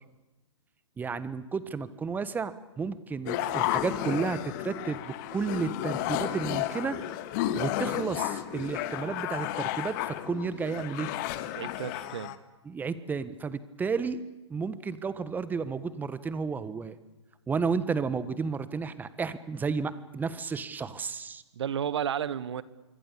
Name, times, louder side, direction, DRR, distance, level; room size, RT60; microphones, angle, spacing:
voice 1, 1.0-7.0 7.5-11.1 12.6-14.2 14.5-17.0 17.5-21.4, right 5 dB, 10° right, 15 dB, 1.3 m, -32 dB
sound 1, 3.3-12.4, left 13 dB, 40° left, 1.9 m, -32 dB
voice 2, 11.6-12.4 21.5-22.6, right 9 dB, 65° right, 17 dB, 1.3 m, -32 dB
26.5 x 23.0 x 8.6 m, 1.1 s
hypercardioid pair, 125°, 16 cm